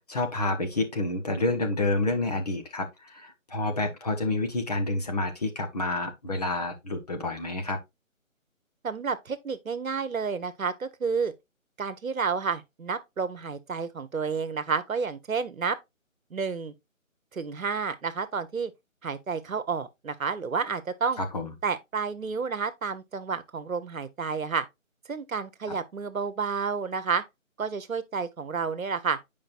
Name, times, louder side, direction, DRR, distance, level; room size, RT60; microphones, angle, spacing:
voice 1, 0.1-7.8 21.2-21.5, left 2 dB, 30° left, 1.0 m, -29 dB
voice 2, 8.8-11.3 11.8-15.8 16.3-16.7 17.3-18.7 19.0-21.2 21.6-24.6 25.1-27.2 27.6-29.2, right 5 dB, 75° right, 1.0 m, -30 dB
8.7 x 5.2 x 2.5 m
figure-of-eight pair, 155°, 41 cm